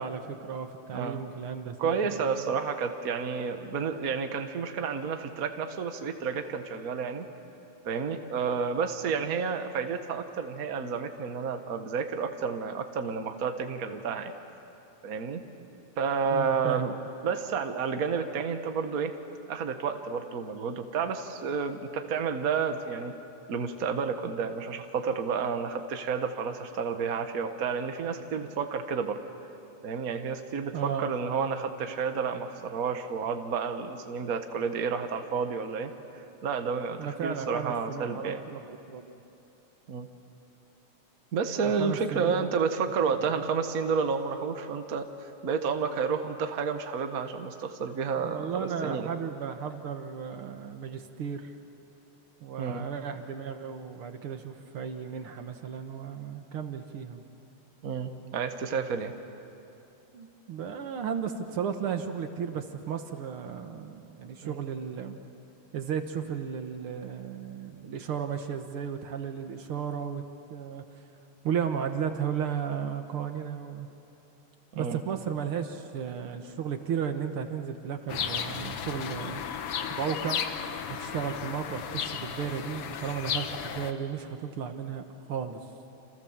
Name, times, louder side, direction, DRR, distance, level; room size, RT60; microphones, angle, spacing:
voice 1, 0.0-2.5 16.3-17.0 30.7-31.1 37.0-39.1 41.6-42.5 43.0-43.2 48.2-51.5 52.4-57.2 60.1-65.2 65.7-70.2 70.5-70.8 71.4-73.9 74.7-79.4 80.0-80.4 80.9-85.0 85.3-85.6, right 7 dB, 60° right, 7 dB, 1.5 m, -34 dB
voice 2, 0.9-1.2 1.8-7.3 7.8-14.3 15.0-15.4 16.0-16.9 17.2-19.1 19.5-23.1 23.5-29.2 29.8-35.9 36.4-38.4 39.9-40.1 41.3-49.1 52.6-52.9 57.8-59.1 64.4-64.6 74.8-75.0, right 5 dB, 80° right, 6 dB, 0.8 m, -30 dB
sound 1, 78.1-83.9, left 8 dB, 65° left, 1.5 m, -34 dB
29.0 x 27.5 x 7.4 m, 2.8 s
omnidirectional pair, 3.9 m